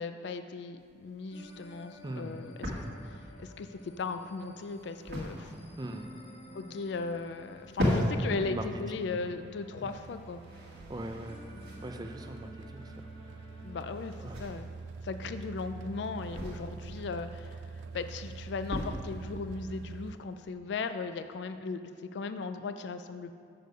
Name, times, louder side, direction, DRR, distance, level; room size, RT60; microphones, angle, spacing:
voice 1, 0.0-5.5 6.5-10.4 13.6-14.7 15.0-17.6 17.9-21.8 22.1-23.3, left 4 dB, 70° left, 10 dB, 0.3 m, -37 dB
sound 1, 0.8-20.5, equal, 55° right, 1.4 m, -39 dB
sound 2, 1.3-14.2, left 1 dB, 30° left, 1.2 m, -53 dB
voice 2, 2.0-2.4 5.8-6.1 8.4-8.7 9.0-9.2 9.8-9.9 10.9-11.4 11.8-13.5 14.2-14.4, right 1 dB, 20° right, 6 dB, 0.4 m, -41 dB
sound 3, 2.0-20.1, right 4 dB, 85° right, 0.3 m, -47 dB
6.5 x 6.4 x 5.2 m, 2.5 s
head